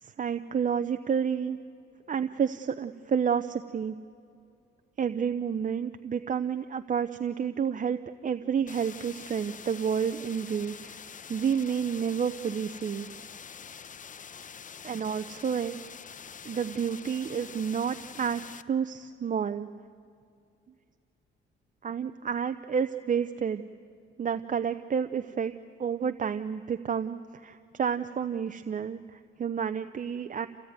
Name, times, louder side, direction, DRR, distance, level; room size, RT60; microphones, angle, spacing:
voice 1, 0.0-1.6 2.1-4.0 5.0-11.0 11.3-13.1 14.8-15.8 16.4-18.4 18.7-19.7 21.8-23.6 24.2-25.5 25.8-30.5, right 7 dB, 40° right, 9 dB, 0.8 m, -30 dB
sound 1, 8.7-18.6, left 7 dB, 40° left, 0.9 m, -45 dB
28.0 x 16.5 x 9.5 m, 2.4 s
cardioid pair, 90°, 20 cm